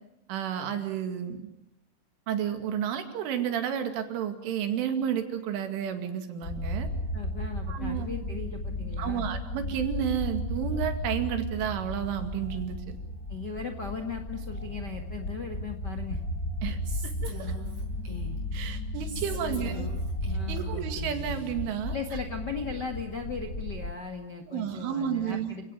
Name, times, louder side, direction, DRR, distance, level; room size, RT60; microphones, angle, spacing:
voice 1, 0.3-1.5 2.3-6.9 7.7-8.1 9.0-13.0 16.6-17.5 18.5-19.9 20.5-22.0 24.5-25.6, right 9 dB, 90° right, 7 dB, 4.8 m, -31 dB
sound 1, 6.4-23.9, left 1 dB, 30° left, 1.9 m, -34 dB
voice 2, 7.1-9.3 13.3-16.2 19.2-19.9 20.3-20.7 21.9-25.7, left 5 dB, 65° left, 5 dB, 1.0 m, -38 dB
Female speech woman speaking, 16.8-18.6 19.1-21.6, equal, 40° right, 7.4 m, -42 dB
28.5 x 17.5 x 9.7 m, 0.83 s
omnidirectional pair, 5.4 m